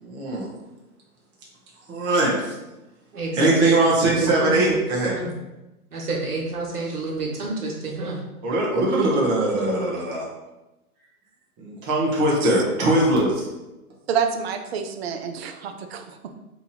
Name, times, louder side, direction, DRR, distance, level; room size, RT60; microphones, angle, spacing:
voice 1, 0.0-0.5 1.9-2.5 3.3-5.1 8.4-10.3 11.6-13.5, right 1 dB, 25° right, -4 dB, 0.8 m, -21 dB
voice 2, 3.1-4.8 5.1-5.3 5.9-8.2, right 2 dB, 85° right, -1 dB, 1.3 m, -28 dB
voice 3, 14.1-16.3, right 7 dB, 45° right, 6 dB, 0.4 m, -28 dB
2.9 x 2.6 x 4.0 m, 1.0 s
hypercardioid pair, 125°, 45 cm